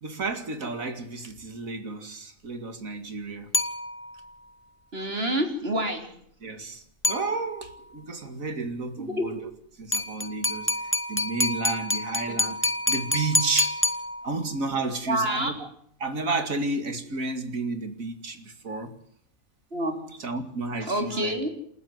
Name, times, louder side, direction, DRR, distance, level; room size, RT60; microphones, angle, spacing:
voice 1, 0.0-3.5 6.4-9.5 9.8-13.8 14.2-15.7 16.0-18.9 20.2-21.4, right 3 dB, 75° right, 2.8 m, -32 dB
sound 1, 3.5-4.3 7.0-7.8 9.9-14.6, left 2 dB, 10° left, 1.4 m, -28 dB
voice 2, 4.9-6.1 9.0-9.3 12.3-12.4 15.1-15.5 19.7-19.9 20.8-21.5, right 1 dB, 45° right, 3.9 m, -27 dB
29.0 x 13.0 x 7.9 m
omnidirectional pair, 1.4 m